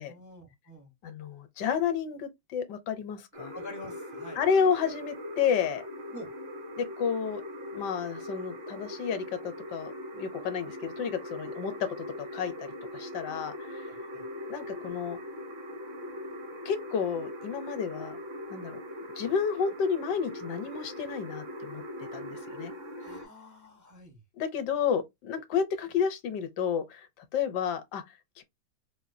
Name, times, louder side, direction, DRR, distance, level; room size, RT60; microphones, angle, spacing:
voice 1, 0.0-0.9 3.5-4.4 6.1-6.3 13.9-14.2 22.9-24.2, left 1 dB, 25° right, 0.4 m, -47 dB
voice 2, 1.0-3.5 4.4-5.8 6.8-7.4 7.7-11.9 12.2-14.0 14.5-15.2 16.6-18.2 18.5-18.8 19.2-21.8 22.1-22.7 24.3-28.4, left 7 dB, 75° left, 1.2 m, -31 dB
sound 1, 3.3-23.2, left 1 dB, 50° right, 0.8 m, -41 dB
4.3 x 2.2 x 2.5 m
omnidirectional pair, 2.0 m